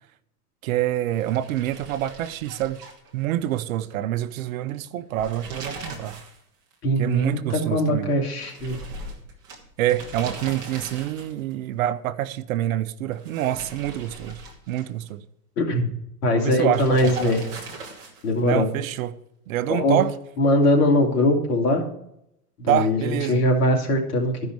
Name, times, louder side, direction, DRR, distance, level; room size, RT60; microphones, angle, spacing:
voice 1, 0.6-2.8 3.1-6.2 7.0-8.1 9.8-14.4 14.7-15.2 16.3-17.4 18.4-19.1 19.5-20.1 22.7-23.4, right 12 dB, 55° right, 0.6 m, -26 dB
sound 1, 1.1-3.6 3.9-4.0 5.0-6.4 6.7-6.8 8.4-11.5 13.1-15.1 16.7-18.4, right 2 dB, 10° right, 0.3 m, -39 dB
voice 2, 6.8-8.8 15.6-15.9 16.2-17.4 18.2-18.7 19.7-20.0 20.4-21.8 22.6-24.3, left 1 dB, 65° left, 2.8 m, -21 dB
13.5 x 5.3 x 4.6 m
hypercardioid pair, 140°, 49 cm